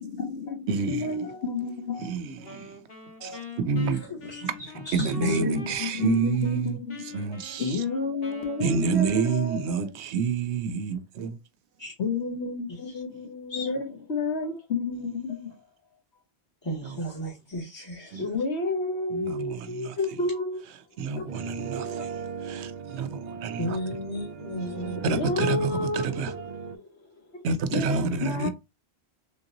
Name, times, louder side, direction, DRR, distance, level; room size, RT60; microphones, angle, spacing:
voice 1, 0.0-2.1 3.2-3.4 5.2-7.0 7.6-9.9 12.0-15.6 18.2-20.6 21.2-21.3 21.8-22.1 25.1-26.4 26.6-26.9 27.3-27.4 27.7-28.5, left 3 dB, 80° left, 1.3 m, -30 dB
voice 2, 0.7-1.1 2.0-2.7 3.2-4.6 4.9-6.8 7.1-7.8 8.6-11.4 16.8-17.0 18.1-18.2 19.1-20.0 21.0-23.8 25.0-26.3 27.4-28.5, right 5 dB, 85° right, 0.9 m, -29 dB
Wind instrument woodwind instrument, 2.4-6.6 6.9-9.8, left 3 dB, 65° left, 1.3 m, -45 dB
voice 3, 4.1-4.4 4.8-5.4 11.8-11.9 12.7-12.8 13.5-13.7 16.6-18.4 23.6-25.2, equal, 25° left, 0.8 m, -35 dB
sound 1, 21.3-26.8, right 5 dB, 55° right, 0.5 m, -37 dB
3.4 x 2.8 x 2.6 m
omnidirectional pair, 1.1 m